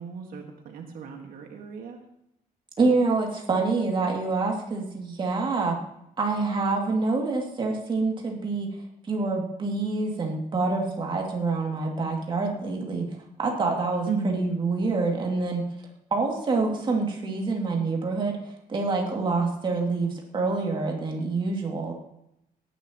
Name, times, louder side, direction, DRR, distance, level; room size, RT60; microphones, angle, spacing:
voice 1, 0.0-2.0 14.1-14.3, right 5 dB, 85° right, 2 dB, 1.8 m, -34 dB
voice 2, 2.8-5.8 6.2-8.8 9.1-13.1 13.4-15.6 16.1-21.9, right 3 dB, 35° right, 0 dB, 2.5 m, -26 dB
17.5 x 10.5 x 3.0 m, 0.80 s
cardioid pair, 145°, 15 cm